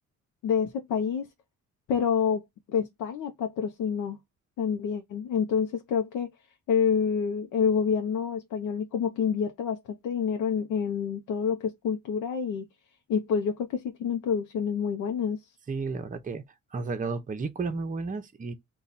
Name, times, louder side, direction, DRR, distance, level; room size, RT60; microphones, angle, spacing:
voice 1, 0.4-1.3 1.9-4.2 4.6-6.3 6.7-12.7 13.1-15.5, left 7 dB, 80° left, 0.7 m, -28 dB
voice 2, 15.7-16.4 16.7-18.5, right 4 dB, 25° right, 0.7 m, -32 dB
4.1 x 2.4 x 4.0 m
cardioid pair, 90°, 30 cm